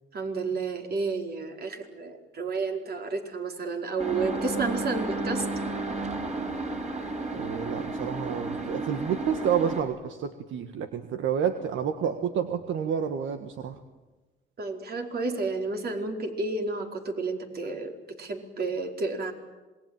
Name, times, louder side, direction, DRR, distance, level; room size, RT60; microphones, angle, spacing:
voice 1, 0.1-5.5 14.6-19.3, right 3 dB, 50° right, 3 dB, 4.8 m, -31 dB
sound 1, 4.0-9.8, right 2 dB, 35° right, 6.6 m, -32 dB
voice 2, 7.3-13.8, right 8 dB, 75° right, 7 dB, 1.7 m, -29 dB
27.0 x 21.0 x 9.1 m, 1.2 s
cardioid pair, 90°, 20 cm